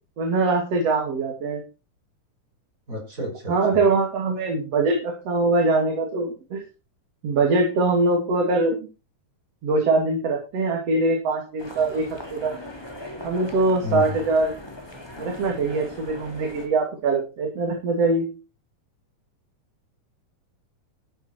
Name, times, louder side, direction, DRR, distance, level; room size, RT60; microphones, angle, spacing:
voice 1, 0.2-1.6 3.5-6.6 7.2-8.8 9.6-12.5 13.2-14.5 15.2-18.3, right 3 dB, 50° right, 1 dB, 3.5 m, -22 dB
voice 2, 2.9-3.8 13.8-14.2, left 4 dB, 25° right, 1 dB, 5.7 m, -31 dB
sound 1, 11.6-16.7, left 1 dB, 10° left, 2.7 m, -39 dB
12.0 x 11.0 x 4.5 m, 0.32 s
omnidirectional pair, 3.6 m